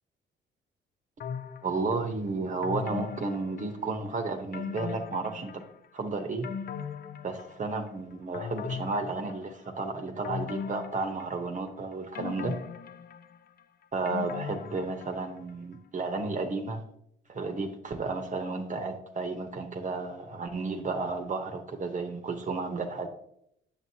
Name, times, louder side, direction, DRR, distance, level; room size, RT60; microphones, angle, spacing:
sound 1, 1.2-2.0 2.6-4.1 4.5-5.9 6.2-7.9 8.3-9.7 10.2-11.7 12.2-15.4 15.7-15.8, left 7 dB, 50° left, 0.5 m, -39 dB
voice 1, 1.6-5.6 5.9-6.5 7.2-12.6 13.9-16.8 17.3-23.1, right 3 dB, 40° right, 5 dB, 0.9 m, -32 dB
7.7 x 6.8 x 2.8 m, 0.75 s
cardioid pair, 90°, 20 cm